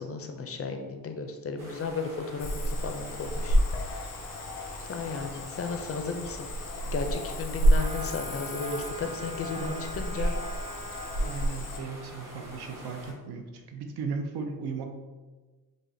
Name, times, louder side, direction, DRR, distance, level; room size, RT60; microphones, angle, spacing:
voice 1, 0.0-4.1 4.8-6.5 6.9-10.3, left 4 dB, 40° left, 5 dB, 0.4 m, -35 dB
sound 1, 1.6-13.1, equal, 55° right, 1.0 m, -46 dB
Cricket / Frog, 2.4-11.8, equal, 85° left, 0.6 m, -30 dB
sound 2, 7.7-11.5, right 2 dB, 20° right, 0.4 m, -42 dB
voice 2, 9.5-10.4 11.2-14.9, right 4 dB, 90° right, 4 dB, 0.6 m, -37 dB
4.9 x 2.1 x 2.6 m, 1.3 s
cardioid pair, 105°, 38 cm